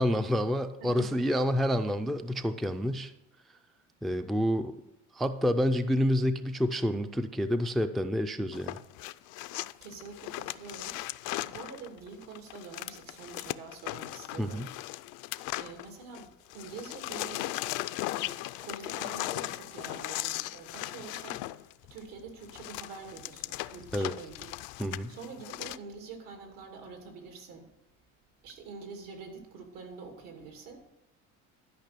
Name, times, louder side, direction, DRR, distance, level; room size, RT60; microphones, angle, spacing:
voice 1, 0.0-3.1 4.0-4.8 5.1-8.8 14.4-14.7 23.9-24.1 24.8-25.1, equal, ahead, 9 dB, 0.3 m, -28 dB
voice 2, 0.8-1.2 9.8-11.0 11.4-14.7 15.6-17.6 18.1-18.3 18.6-21.4 21.9-24.5 25.1-27.7 28.4-30.8, right 4 dB, 85° right, 4 dB, 2.6 m, -46 dB
sound 1, 8.5-16.2 16.5-25.8, left 18 dB, 65° left, 0.5 m, -38 dB
12.0 x 5.3 x 6.7 m, 0.88 s
cardioid pair, 135°, 32 cm